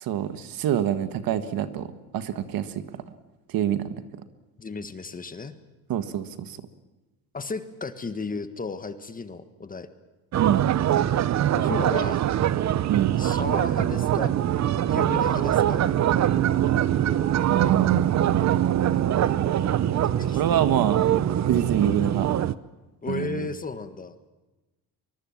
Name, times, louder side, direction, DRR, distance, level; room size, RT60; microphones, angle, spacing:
voice 1, 0.0-2.7 3.5-3.9 5.9-6.6 10.4-10.6 12.9-13.1 17.3-18.5 20.4-21.1 21.5-22.3 23.1-23.5, right 10 dB, 65° right, 10 dB, 1.7 m, -26 dB
voice 2, 4.6-5.5 7.3-9.9 11.5-12.2 13.2-14.3 14.9-15.8 20.0-20.5 23.0-24.1, left 4 dB, 20° left, 10 dB, 1.5 m, -34 dB
sound 1, 10.3-22.5, right 11 dB, 45° right, 0.8 m, -23 dB
sound 2, 13.4-22.5, right 2 dB, 15° right, 2.1 m, -41 dB
24.0 x 22.5 x 7.3 m, 1.1 s
cardioid pair, 115°, 38 cm